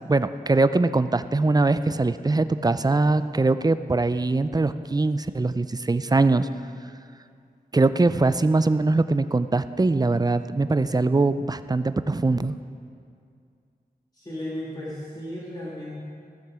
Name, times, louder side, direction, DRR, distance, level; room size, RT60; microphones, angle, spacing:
voice 1, 0.1-6.5 7.7-12.6, right 3 dB, 25° right, 12 dB, 0.4 m, -22 dB
voice 2, 14.1-16.1, left 1 dB, 25° left, -7 dB, 2.1 m, -35 dB
15.0 x 6.6 x 4.9 m, 2.3 s
wide cardioid pair, 50°, 16 cm